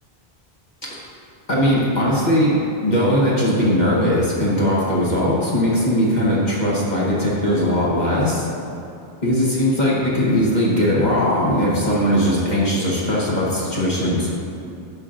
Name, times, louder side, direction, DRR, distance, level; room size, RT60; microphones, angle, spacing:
voice 1, 1.5-2.5 2.8-8.5 9.2-14.3, equal, 45° left, -7 dB, 1.3 m, -19 dB
11.0 x 7.3 x 2.5 m, 2.6 s
omnidirectional pair, 1.0 m